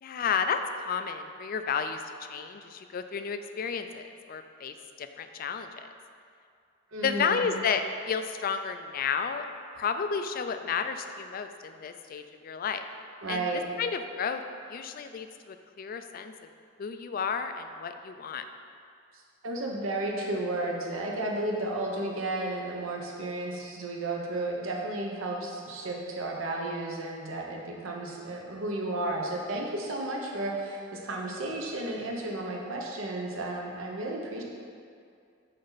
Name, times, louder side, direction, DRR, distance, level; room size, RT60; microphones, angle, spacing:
voice 1, 0.0-2.0 2.3-5.9 7.0-9.5 9.7-12.9 13.3-13.5 13.8-14.4 14.7-16.3 16.8-18.4, left 6 dB, 45° left, 8 dB, 0.3 m, -32 dB
voice 2, 6.9-7.4 13.2-13.6 19.4-34.4, right 2 dB, 85° right, -1 dB, 1.0 m, -33 dB
6.6 x 5.3 x 4.0 m, 2.3 s
head